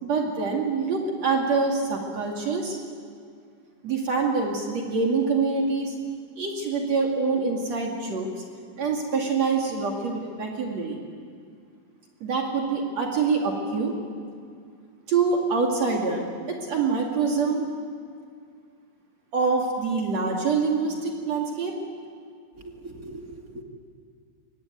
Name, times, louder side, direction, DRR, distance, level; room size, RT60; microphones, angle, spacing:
voice 1, 0.0-2.8 3.8-6.0 6.4-8.3 8.8-11.0 12.2-13.9 15.1-17.6 19.3-21.8, right 4 dB, 50° right, 0 dB, 3.2 m, -25 dB
voice 2, 22.5-23.6, right 1 dB, 30° right, 2 dB, 1.8 m, -41 dB
24.0 x 18.5 x 9.3 m, 2.2 s
omnidirectional pair, 4.4 m